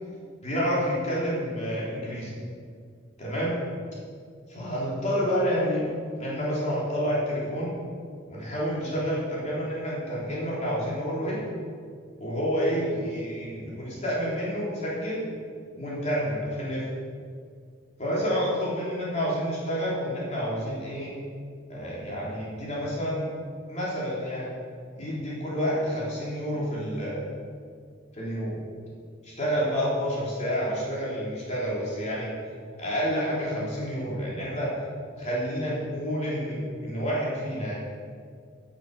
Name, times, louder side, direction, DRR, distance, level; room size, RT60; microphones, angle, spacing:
voice 1, 0.4-2.3 3.2-3.6 4.5-5.9 6.2-7.7 8.3-11.4 12.2-15.3 15.7-16.9 18.0-21.1 21.7-23.2 23.7-24.5 25.0-27.2 28.1-28.5 29.2-32.3 32.8-34.7 35.2-37.7, equal, 40° left, -6 dB, 3.4 m, -29 dB
12.0 x 7.5 x 7.1 m, 2.1 s
head